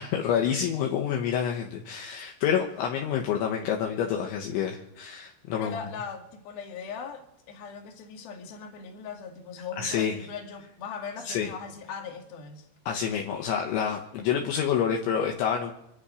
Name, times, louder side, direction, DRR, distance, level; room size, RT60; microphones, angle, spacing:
voice 1, 0.0-5.8 9.8-10.1 11.3-11.5 12.9-15.7, left 8 dB, 75° left, 1 dB, 3.3 m, -28 dB
voice 2, 5.5-12.7, left 6 dB, 60° left, 3 dB, 3.4 m, -39 dB
25.0 x 11.5 x 5.0 m, 0.81 s
omnidirectional pair, 5.7 m